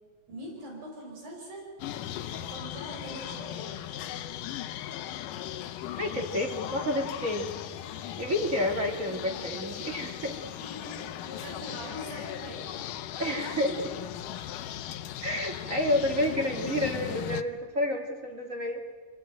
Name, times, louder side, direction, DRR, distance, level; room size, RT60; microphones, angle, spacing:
voice 1, 0.3-1.7 2.3-3.8 9.1-9.4 10.0-10.2 10.6-12.8 13.1-14.0 16.1-16.2, right 1 dB, 85° right, -2 dB, 7.3 m, -43 dB
sound 1, 1.8-17.4, left 11 dB, 75° left, 2.4 m, -38 dB
voice 2, 6.0-7.5 8.2-10.3 13.2-13.7 15.2-18.8, left 1 dB, 25° right, 2 dB, 2.2 m, -29 dB
26.5 x 19.0 x 9.1 m, 1.5 s
omnidirectional pair, 4.0 m